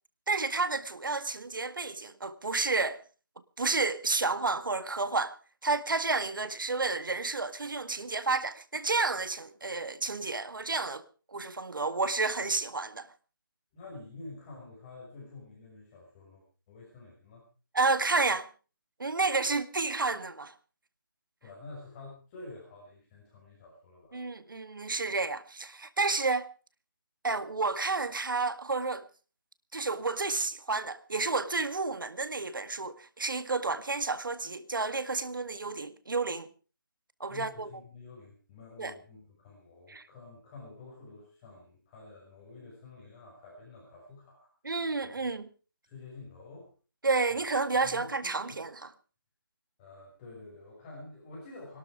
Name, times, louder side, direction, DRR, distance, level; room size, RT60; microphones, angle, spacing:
voice 1, 0.3-3.0 3.6-5.3 5.6-11.0 11.3-13.1 17.7-18.5 19.0-20.5 24.1-26.5 27.2-29.1 29.7-36.5 37.2-37.7 38.8-38.9 39.9-40.1 44.6-45.5 47.0-48.8, right 3 dB, 70° right, 1.9 m, -30 dB
voice 2, 13.7-17.4 21.4-24.2 37.3-44.5 45.1-45.3 45.8-46.7 47.3-47.4 47.8-48.6 49.8-51.8, left 3 dB, 20° left, 6.0 m, -49 dB
22.0 x 12.5 x 4.9 m
figure-of-eight pair, 160°, 11 cm